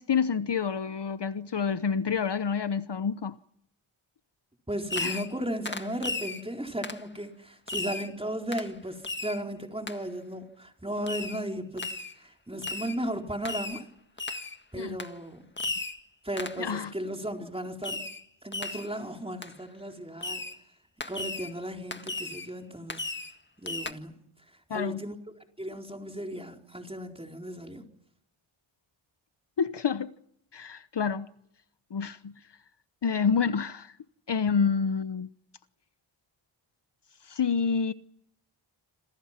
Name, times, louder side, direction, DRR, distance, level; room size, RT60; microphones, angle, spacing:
voice 1, 0.0-3.3 5.0-5.2 14.7-15.0 16.6-16.9 24.7-25.0 29.6-30.1 30.5-31.3 31.9-32.3 33.0-33.9 34.3-35.3 37.3-37.9, left 6 dB, 55° left, 1.1 m, -28 dB
voice 2, 4.7-11.9 12.2-13.9 14.7-15.4 16.2-18.0 18.4-20.5 21.1-23.1 23.6-24.2 24.7-25.1 25.6-27.8, equal, 10° right, 4.2 m, -35 dB
Fireworks, 4.9-5.4 5.7-6.4 6.8-7.1 7.7-8.1 8.5-8.7 9.0-9.4 9.9-10.0 11.1-11.4 11.8-12.1 12.6-13.0 13.5-13.8 14.2-14.6 15.0-15.1 15.6-16.0 16.4-16.6 17.8-18.2 18.5-18.9 19.4-19.5 20.2-20.6 21.0-21.5 21.9-22.5 22.9-23.4 23.7-23.9, left 3 dB, 20° left, 1.7 m, -35 dB
27.5 x 27.5 x 6.0 m
wide cardioid pair, 85°, 50 cm